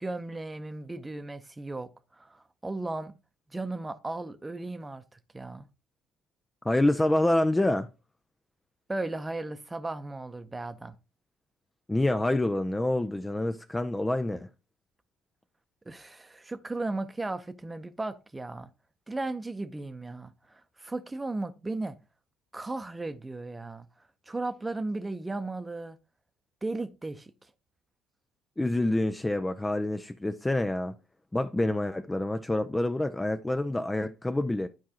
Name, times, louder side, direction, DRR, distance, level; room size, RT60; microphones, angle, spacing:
voice 1, 0.0-1.9 2.2-3.1 3.5-5.7 8.9-10.9 15.9-18.7 19.1-22.0 22.5-23.9 24.3-26.0 26.6-27.3, right 2 dB, 15° right, 0.8 m, -36 dB
voice 2, 6.6-7.9 11.9-14.5 28.6-30.9 31.3-34.7, left 1 dB, 15° left, 0.5 m, -27 dB
11.5 x 4.6 x 2.9 m
hypercardioid pair, 60°, 0 cm